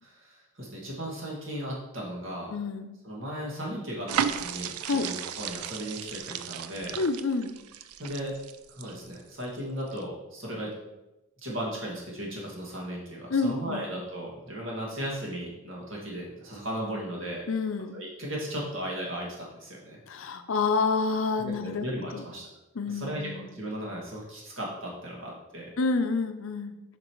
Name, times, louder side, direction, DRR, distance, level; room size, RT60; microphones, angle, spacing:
voice 1, 0.0-2.5 3.0-7.0 8.0-8.4 8.7-11.0 11.4-17.4 17.9-20.0 21.4-22.5 22.9-25.7, equal, 60° right, -3 dB, 2.1 m, -36 dB
voice 2, 2.5-3.0 4.9-5.1 6.9-7.6 13.3-13.9 17.5-18.0 20.1-21.9 22.1-22.3 22.8-23.5 25.8-26.7, left 4 dB, 65° left, 8 dB, 0.5 m, -28 dB
sound 1, 4.1-9.4 9.9-10.0, right 8 dB, 85° right, 0.4 m, -34 dB
7.6 x 5.8 x 3.1 m, 0.99 s
head